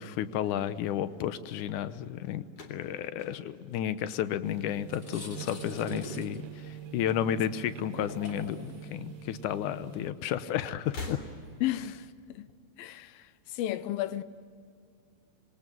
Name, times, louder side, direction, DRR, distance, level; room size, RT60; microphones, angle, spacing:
voice 1, 0.0-2.4 2.7-11.2, left 10 dB, 70° left, 2.2 m, -32 dB
sound 1, 2.5-4.8 5.1-5.7 6.8-7.8 8.0-8.2 9.3-9.4 10.8-11.8, left 3 dB, 50° left, 4.6 m, -45 dB
sound 2, 4.4-10.1, right 11 dB, 65° right, 2.2 m, -45 dB
sound 3, 4.9-12.1, left 1 dB, 30° left, 1.8 m, -48 dB
voice 2, 11.6-12.5 12.8-14.2, left 13 dB, 90° left, 2.6 m, -33 dB
26.0 x 22.0 x 9.3 m
omnidirectional pair, 4.1 m